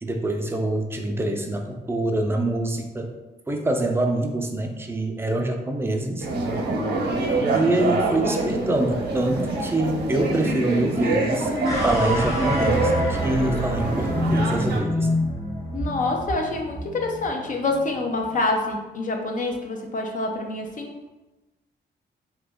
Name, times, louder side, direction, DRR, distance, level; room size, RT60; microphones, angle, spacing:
voice 1, 0.0-3.1 3.5-6.3 7.5-11.5 11.8-15.1, right 1 dB, 15° right, 3 dB, 0.4 m, -25 dB
sound 1, 6.2-14.8, right 2 dB, 70° right, 0.8 m, -25 dB
sound 2, 11.6-18.0, equal, 15° left, 0.9 m, -27 dB
voice 2, 15.7-21.0, left 2 dB, 50° left, 2 dB, 0.6 m, -26 dB
2.9 x 2.5 x 3.5 m, 1.1 s
cardioid pair, 100°, 18 cm